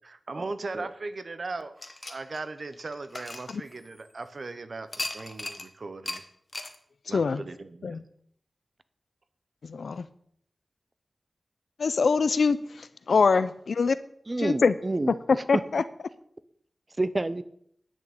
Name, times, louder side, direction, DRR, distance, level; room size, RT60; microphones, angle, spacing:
voice 1, 0.0-1.7 2.1-6.2 7.1-8.0, right 3 dB, 60° right, 1.0 m, -38 dB
sound 1, 1.8-4.2 4.9-5.7 6.1-6.2 6.5-6.8, left 2 dB, 30° left, 1.4 m, -37 dB
voice 2, 9.7-10.0 11.8-12.6 13.1-14.0 14.4-14.7 15.5-15.8, left 4 dB, 85° left, 0.7 m, -23 dB
voice 3, 14.3-15.6 17.0-17.4, right 2 dB, 30° right, 0.7 m, -29 dB
10.5 x 6.4 x 8.7 m
wide cardioid pair, 95°, 0 cm